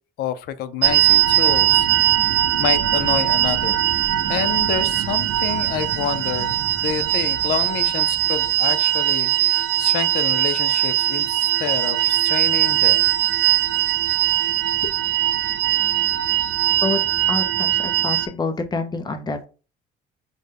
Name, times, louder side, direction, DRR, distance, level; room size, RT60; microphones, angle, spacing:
voice 1, 0.2-1.9 2.6-3.9 4.3-13.1, left 10 dB, 70° left, 0.5 m, -28 dB
sound 1, 0.8-18.3, right 14 dB, 80° right, 0.5 m, -20 dB
voice 2, 17.3-19.5, left 3 dB, 25° left, 0.7 m, -27 dB
5.0 x 2.2 x 3.4 m
cardioid pair, 110°, 17 cm